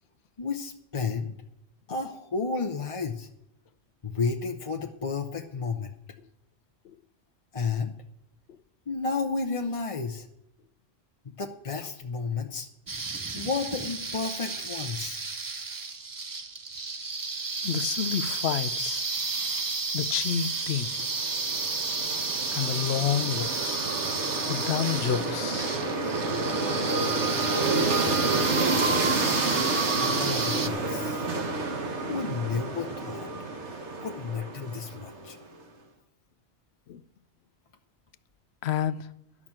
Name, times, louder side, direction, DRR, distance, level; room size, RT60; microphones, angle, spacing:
voice 1, 0.4-1.3 1.9-3.3 4.0-5.9 7.5-7.9 8.9-10.3 11.3-12.7 13.3-15.2 30.0-31.3 32.1-33.3 34.0-35.4, left 4 dB, 35° left, 0.7 m, -32 dB
sound 1, 12.9-30.7, right 4 dB, 30° right, 0.4 m, -32 dB
voice 2, 17.6-19.1 19.9-20.9 22.5-23.8 24.5-25.7 36.9-37.0 38.6-39.0, left 9 dB, 70° left, 0.8 m, -29 dB
sound 2, 21.0-35.3, right 3 dB, 85° right, 1.6 m, -29 dB
12.0 x 6.1 x 8.7 m
omnidirectional pair, 1.1 m